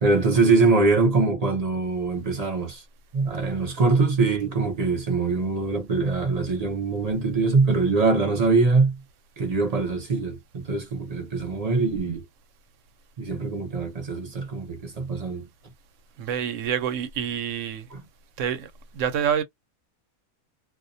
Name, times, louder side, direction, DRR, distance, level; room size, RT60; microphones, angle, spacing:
voice 1, 0.0-2.8 3.1-9.0 9.4-12.2 13.2-15.4, right 3 dB, 40° right, 0.6 m, -23 dB
voice 2, 16.2-17.9 18.4-19.4, right 8 dB, 70° right, 0.9 m, -27 dB
2.3 x 2.2 x 2.5 m
omnidirectional pair, 1.5 m